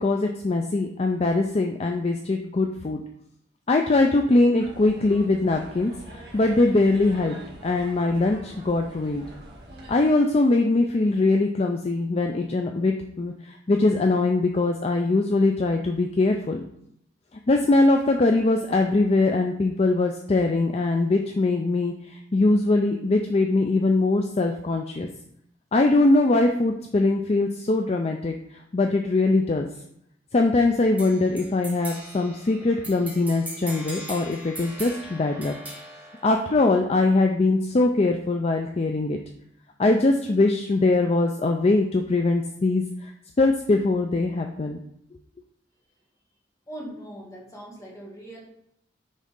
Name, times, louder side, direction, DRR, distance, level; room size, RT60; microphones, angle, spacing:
voice 1, 0.0-3.0 3.7-7.4 7.6-9.2 9.9-16.6 17.5-25.1 25.7-28.3 28.7-29.7 30.3-35.5 36.2-39.2 39.8-43.1 43.4-44.8, left 2 dB, 35° left, 3 dB, 0.4 m, -22 dB
sound 1, 4.6-9.9, right 1 dB, 65° right, 2.1 m, -44 dB
sound 2, 31.0-37.0, right 1 dB, 10° right, 1.5 m, -40 dB
voice 2, 46.7-48.4, right 1 dB, 15° left, -4 dB, 1.7 m, -40 dB
9.5 x 3.7 x 3.7 m, 0.72 s
head